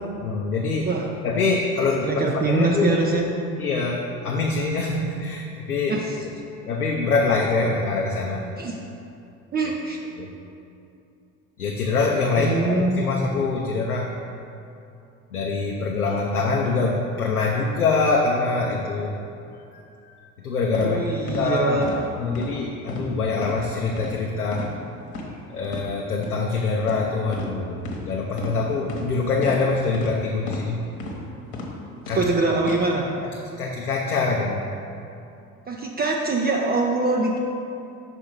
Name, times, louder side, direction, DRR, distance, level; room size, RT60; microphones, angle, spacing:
voice 1, 0.2-0.9 1.2-3.1 3.6-6.0 6.7-8.4 10.2-10.3 11.6-14.1 15.3-19.2 19.7-19.8 20.4-24.7 25.5-30.8 32.1-32.3 33.2-34.6, left 3 dB, 90° left, -1 dB, 0.6 m, -24 dB
voice 2, 2.0-3.2 5.9-6.0 8.6-8.8 9.5-10.0 12.4-13.1 20.8-21.9 32.1-33.0 35.7-37.4, right 3 dB, 20° right, -1 dB, 0.5 m, -23 dB
sound 1, 20.7-20.9 21.3-21.4 21.8-22.0 22.3-22.5 22.9-23.1 23.4-23.6 24.0-24.1 24.5-24.7 25.1-25.3 25.7-25.8 26.2-26.4 26.8-27.0 27.3-27.5 27.8-28.0 28.4-28.5 28.9-29.1 29.4-29.6 29.9-30.1 30.5-30.7 31.0-31.2 31.5-31.7 32.1-32.2 32.6-32.8, left 2 dB, 55° left, 1.2 m, -33 dB
5.7 x 4.0 x 5.4 m, 2.7 s
figure-of-eight pair, 60°, 43 cm